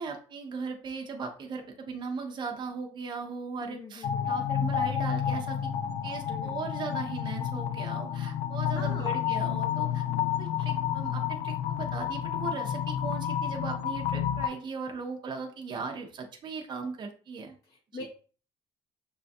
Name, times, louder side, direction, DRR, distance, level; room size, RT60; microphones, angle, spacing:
voice 1, 0.0-5.7 6.0-10.0 10.4-17.6, right 5 dB, 40° right, 2 dB, 0.7 m, -38 dB
voice 2, 3.6-4.3 6.3-6.6 8.7-9.3 17.7-18.1, left 2 dB, 30° left, -2 dB, 0.6 m, -43 dB
sound 1, 4.0-14.5, left 9 dB, 85° left, 0.4 m, -30 dB
6.3 x 2.3 x 2.6 m, 0.41 s
cardioid pair, 150°, 12 cm